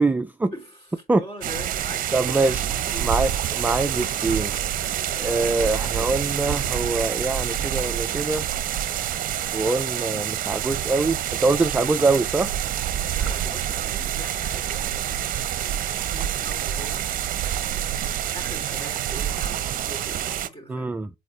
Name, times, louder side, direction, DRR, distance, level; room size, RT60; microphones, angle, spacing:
voice 1, 0.0-0.5 1.1-1.2 2.1-2.6 3.0-4.5 5.2-8.5 9.5-12.5 20.7-21.1, right 3 dB, 10° right, 0.3 m, -24 dB
voice 2, 0.5-3.1 13.1-17.1 18.3-21.0, equal, 30° left, 3.1 m, -42 dB
sound 1, 1.4-20.5, right 11 dB, 55° right, 0.7 m, -27 dB
8.1 x 4.3 x 3.2 m
cardioid pair, 110°, 17 cm